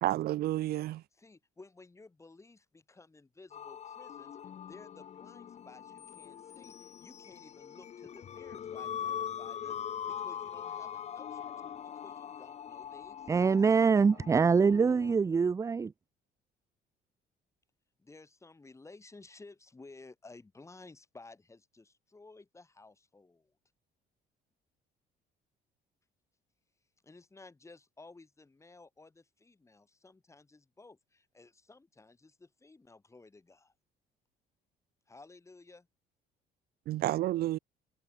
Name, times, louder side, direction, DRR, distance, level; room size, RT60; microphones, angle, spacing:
voice 1, 0.0-1.0 36.9-37.6, right 15 dB, 65° right, 0.7 m, -30 dB
voice 2, 1.1-4.4 4.6-13.6 18.0-23.5 27.0-33.7 35.1-35.9, left 3 dB, 15° left, 4.5 m, -55 dB
sound 1, 3.5-15.1, left 9 dB, 40° left, 0.8 m, -42 dB
voice 3, 13.3-15.9, right 5 dB, 20° right, 0.4 m, -24 dB
cardioid pair, 110°, 17 cm